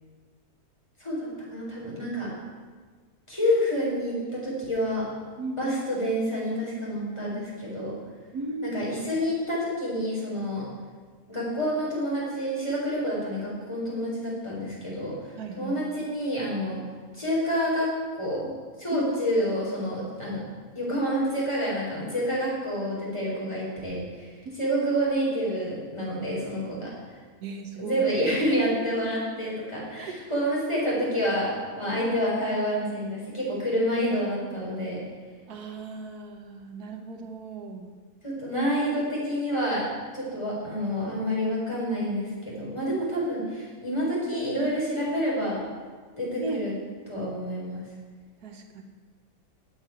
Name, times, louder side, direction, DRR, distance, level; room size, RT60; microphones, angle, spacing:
voice 1, 1.0-2.3 3.3-5.1 5.6-8.0 8.6-10.7 11.3-16.8 17.1-18.5 18.8-20.4 20.7-26.9 27.8-35.0 38.2-39.8 40.1-45.6 46.2-46.7 47.1-47.8, equal, 20° left, -6 dB, 4.4 m, -28 dB
voice 2, 5.4-5.7 8.3-8.8 15.4-15.8 18.9-19.1 24.4-24.5 27.4-28.0 30.0-30.2 35.5-37.9 46.4-46.7 48.4-48.8, right 2 dB, 80° right, 4 dB, 1.7 m, -36 dB
8.8 x 8.6 x 9.0 m, 1.5 s
omnidirectional pair, 1.6 m